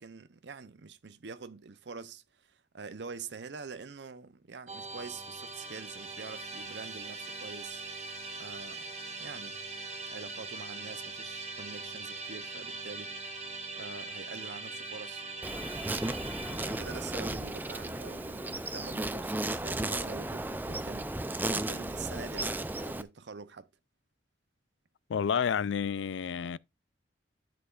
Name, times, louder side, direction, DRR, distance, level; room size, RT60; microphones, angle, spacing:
voice 1, 0.0-7.9 8.4-8.9 9.2-9.6 10.1-13.2 13.8-15.2 16.5-23.7, right 5 dB, 70° right, 0.6 m, -45 dB
Musical instrument, 4.7-19.8, right 3 dB, 35° right, 1.6 m, -42 dB
Insect, 15.4-23.0, right 2 dB, 10° right, 0.4 m, -35 dB
voice 2, 25.1-26.6, left 7 dB, 85° left, 0.4 m, -30 dB
11.5 x 7.8 x 2.4 m
head